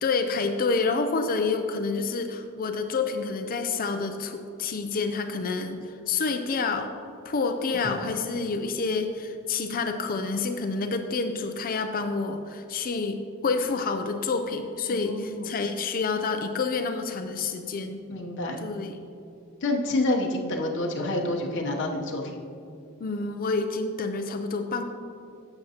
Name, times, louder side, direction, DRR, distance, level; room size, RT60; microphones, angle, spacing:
voice 1, 0.0-6.9 7.2-18.0 18.6-19.0 23.0-24.8, left 4 dB, 40° left, 6 dB, 0.5 m, -28 dB
voice 2, 7.9-8.2 14.9-15.5 18.1-18.6 19.6-22.2, left 2 dB, 60° left, 0 dB, 0.9 m, -28 dB
11.5 x 7.8 x 2.9 m, 2.6 s
head